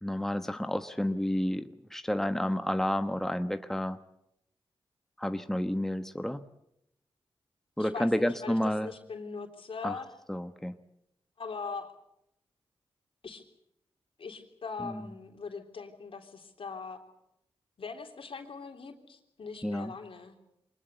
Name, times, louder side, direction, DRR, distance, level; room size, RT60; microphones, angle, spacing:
voice 1, 0.0-4.0 5.2-6.4 7.8-8.9 9.8-10.0 10.3-10.7 14.8-15.0 19.6-19.9, left 1 dB, 5° left, 9 dB, 1.2 m, -30 dB
voice 2, 7.8-10.1 11.4-11.9 13.2-13.4 14.2-17.0 17.8-20.4, left 5 dB, 70° left, 4 dB, 3.6 m, -41 dB
24.0 x 20.5 x 8.2 m, 0.80 s
cardioid pair, 45°, 10 cm